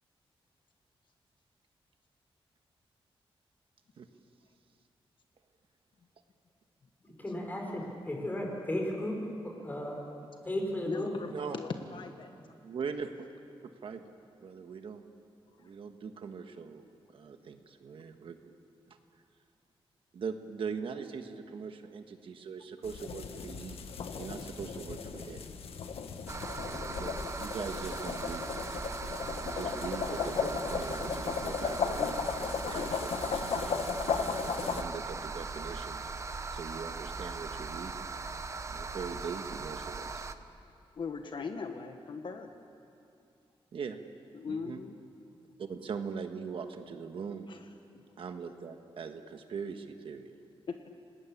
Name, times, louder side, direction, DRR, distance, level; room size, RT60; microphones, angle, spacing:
voice 1, 7.2-9.2 9.4-10.0 10.4-11.1, left 1 dB, 20° left, 1 dB, 4.9 m, -34 dB
voice 2, 10.9-12.3 40.9-42.5 44.3-45.0 47.5-47.6 50.7-50.8, left 5 dB, 55° left, 6 dB, 1.4 m, -39 dB
voice 3, 12.6-13.3 13.8-14.1 14.4-15.0 15.6-16.8 17.1-18.5 18.9-19.0 20.1-23.8 24.2-25.4 26.7-28.5 29.4-32.2 32.6-38.1 38.7-40.3 43.7-44.0 44.5-44.8 45.6-47.5 48.2-50.3, right 6 dB, 65° right, 6 dB, 1.5 m, -41 dB
sound 1, 22.8-34.8, left 5 dB, 90° left, 1.6 m, -35 dB
sound 2, 26.3-40.3, right 4 dB, 30° right, 0.9 m, -39 dB
29.0 x 19.5 x 8.6 m, 2.5 s
wide cardioid pair, 155°, 10 cm